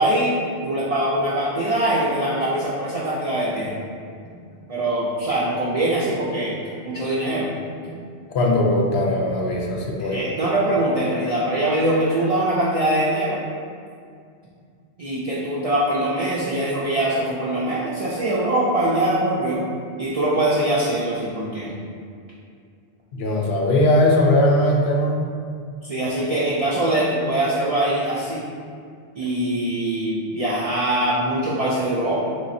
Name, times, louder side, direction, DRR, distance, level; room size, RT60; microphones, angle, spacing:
voice 1, 0.0-3.7 4.7-6.5 6.8-7.5 10.1-13.4 15.0-19.6 20.0-21.7 25.8-28.4 29.2-32.1, right 1 dB, 60° right, -8 dB, 0.4 m, -22 dB
voice 2, 8.3-10.4 23.1-25.2, left 1 dB, 70° left, -1 dB, 0.8 m, -19 dB
3.7 x 3.0 x 2.6 m, 2.3 s
omnidirectional pair, 1.1 m